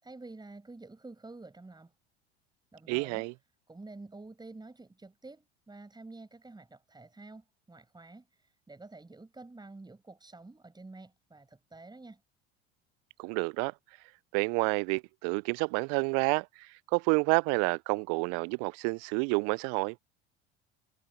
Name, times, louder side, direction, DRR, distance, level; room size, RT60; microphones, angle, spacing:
voice 1, 0.0-1.9 2.7-3.3 3.7-12.2, right 3 dB, 10° right, 7.3 m, -49 dB
voice 2, 2.9-3.3 13.2-13.7 14.3-16.5 16.9-20.0, right 37 dB, 50° right, 0.5 m, -29 dB
figure-of-eight pair, 70°, 33 cm